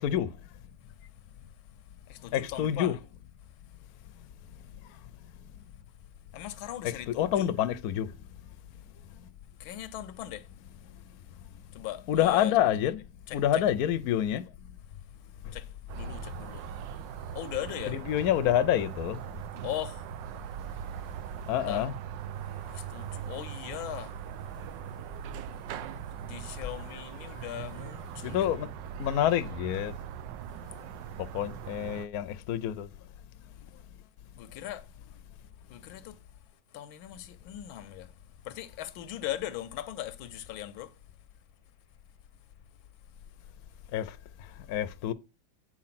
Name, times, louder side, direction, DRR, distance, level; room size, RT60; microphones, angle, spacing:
voice 1, 0.0-0.3 2.3-3.0 6.8-8.1 12.1-13.0 13.3-14.4 15.4-15.5 17.9-19.2 21.5-21.9 28.2-28.7 29.0-29.9 31.2-32.9 43.9-45.1, left 11 dB, 65° left, 1.0 m, -27 dB
voice 2, 2.1-3.0 6.3-7.5 9.6-10.4 11.7-12.5 13.3-13.6 15.5-15.7 15.9-16.6 17.3-18.0 19.6-20.0 21.7-21.9 22.7-24.1 26.2-28.5 34.4-34.8 35.7-36.2 36.7-38.1 38.4-40.9, left 13 dB, 85° left, 1.5 m, -39 dB
sound 1, 15.9-32.1, right 10 dB, 75° right, 1.2 m, -40 dB
8.6 x 4.6 x 5.8 m
omnidirectional pair, 2.1 m